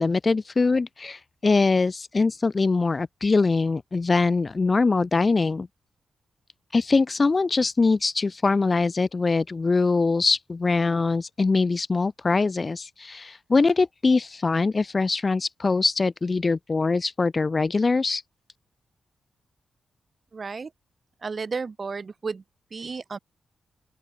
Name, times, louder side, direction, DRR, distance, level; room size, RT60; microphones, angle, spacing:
voice 1, 0.0-5.7 6.7-18.2, left 3 dB, 30° left, 0.7 m, -23 dB
voice 2, 20.3-20.7 21.2-22.4 22.7-23.2, right 4 dB, 35° right, 2.1 m, -32 dB
open air
wide cardioid pair, 135°, 0 cm